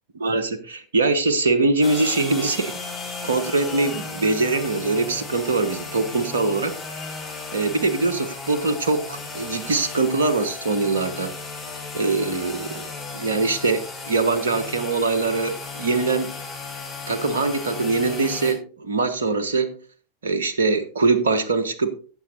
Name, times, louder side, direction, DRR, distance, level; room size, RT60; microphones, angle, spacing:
voice 1, 0.2-2.8 3.2-6.8 7.5-11.3 11.9-12.8 13.1-16.3 17.1-19.8 20.2-22.0, right 3 dB, 70° right, 11 dB, 1.1 m, -23 dB
sound 1, 1.8-18.5, left 4 dB, 10° left, 4.8 m, -35 dB
16.5 x 7.2 x 2.6 m, 0.38 s
figure-of-eight pair, 85°, 0 cm